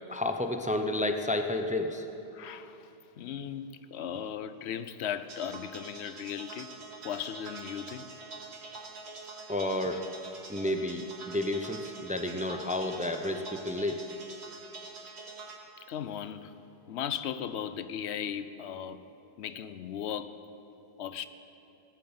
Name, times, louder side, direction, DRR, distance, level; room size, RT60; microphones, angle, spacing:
voice 1, 0.1-2.1 9.5-10.1 10.5-14.0, left 1 dB, 10° right, 5 dB, 0.4 m, -31 dB
voice 2, 2.3-6.7 7.0-8.1 9.2-9.3 15.8-19.0 19.4-20.4 21.0-21.3, left 9 dB, 90° left, 13 dB, 0.9 m, -37 dB
sound 1, 5.3-15.6, right 3 dB, 80° right, 1.6 m, -45 dB
17.0 x 7.6 x 8.7 m, 2.9 s
omnidirectional pair, 1.1 m